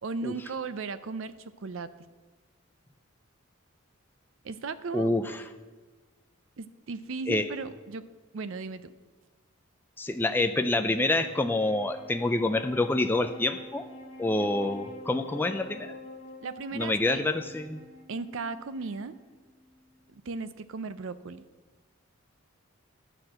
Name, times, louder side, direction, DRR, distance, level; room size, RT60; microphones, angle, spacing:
voice 1, 0.0-1.9 4.4-5.1 6.6-8.0 8.3-8.9 16.4-17.2 18.1-19.2 20.1-21.4, right 4 dB, 60° right, 13 dB, 0.5 m, -36 dB
voice 2, 4.9-5.4 7.3-7.4 10.0-13.9 14.2-15.9 16.7-17.8, left 2 dB, 10° left, 6 dB, 0.3 m, -27 dB
Wind instrument woodwind instrument, 10.7-20.2, left 1 dB, 60° left, 1.7 m, -47 dB
11.5 x 4.4 x 7.6 m, 1.3 s
head